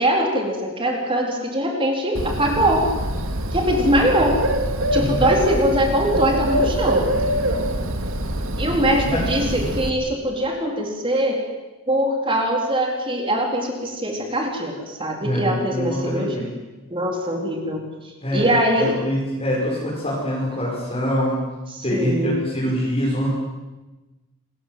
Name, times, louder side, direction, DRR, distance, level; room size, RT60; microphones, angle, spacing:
voice 1, 0.0-2.8 3.5-4.4 4.9-7.1 8.6-11.4 11.9-16.4 16.9-18.9 21.7-22.4, right 1 dB, 25° right, 1 dB, 4.1 m, -22 dB
Bird, 2.2-9.9, right 1 dB, 60° right, 2.8 m, -24 dB
voice 2, 15.2-16.4 18.2-18.5 18.8-21.4 21.8-23.3, equal, 25° left, -6 dB, 6.0 m, -24 dB
27.5 x 21.5 x 7.9 m, 1.1 s
head